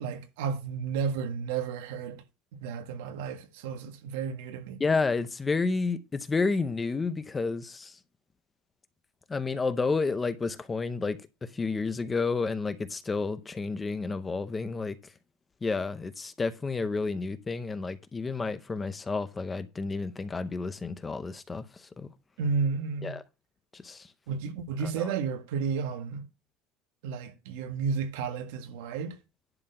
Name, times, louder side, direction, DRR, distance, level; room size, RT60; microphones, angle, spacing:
voice 1, 0.0-2.2 2.5-4.8 22.4-23.2 24.3-26.3 27.0-29.2, right 5 dB, 90° right, 1.6 m, -32 dB
voice 2, 4.8-8.0 9.3-15.1 15.6-22.1 23.0-23.2 23.7-24.1 24.8-25.1, left 4 dB, 10° left, 0.6 m, -31 dB
11.0 x 4.4 x 5.6 m
cardioid pair, 175°, 0 cm